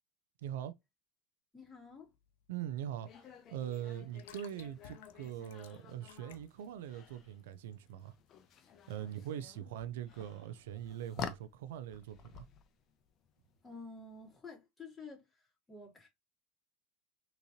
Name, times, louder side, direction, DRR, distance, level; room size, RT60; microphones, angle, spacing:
voice 1, 0.4-0.7 2.5-8.1 8.9-12.5, right 10 dB, 80° right, 0.4 m, -42 dB
voice 2, 1.5-2.1 13.6-16.1, left 3 dB, 15° left, 2.2 m, -51 dB
sound 1, 1.6-8.3, left 8 dB, 85° left, 0.6 m, -60 dB
sound 2, 3.0-14.3, left 8 dB, 45° left, 0.6 m, -51 dB
3.6 x 2.9 x 2.7 m
supercardioid pair, 105°, 0 cm